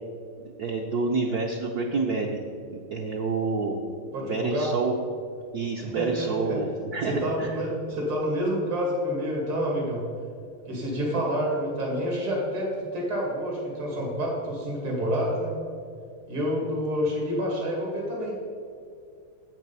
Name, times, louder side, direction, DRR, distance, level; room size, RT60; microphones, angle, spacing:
voice 1, 0.6-2.4 2.7-3.8 4.2-4.9 5.5-7.6, right 4 dB, 65° right, 0 dB, 1.0 m, -28 dB
voice 2, 4.1-4.7 6.0-6.6 7.0-10.0 10.7-15.5 16.3-18.4, equal, 85° right, -2 dB, 3.1 m, -28 dB
9.2 x 8.0 x 5.4 m, 2.3 s
omnidirectional pair, 2.3 m